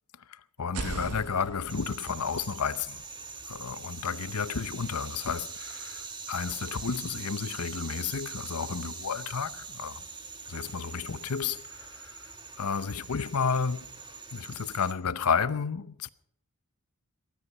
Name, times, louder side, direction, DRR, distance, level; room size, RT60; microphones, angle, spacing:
voice 1, 0.3-3.0 3.5-10.0 10.5-12.2 12.6-13.9 14.3-16.1, left 6 dB, 75° left, 0.7 m, -32 dB
sound 1, 0.6-4.4, right 3 dB, 90° right, 0.9 m, -41 dB
sound 2, 1.7-14.9, right 5 dB, 20° right, 1.5 m, -43 dB
19.5 x 13.0 x 5.4 m
head